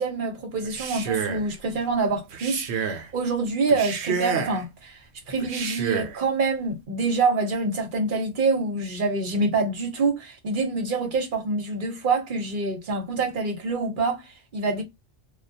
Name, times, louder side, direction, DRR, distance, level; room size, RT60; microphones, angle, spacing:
voice 1, 0.0-5.0 5.3-14.8, right 3 dB, 50° right, 1.0 m, -26 dB
Male speech man speaking, 0.6-1.5 2.3-3.1 3.7-4.6 5.4-6.2, right 6 dB, 80° right, 0.9 m, -29 dB
2.4 x 2.3 x 2.6 m
omnidirectional pair, 1.1 m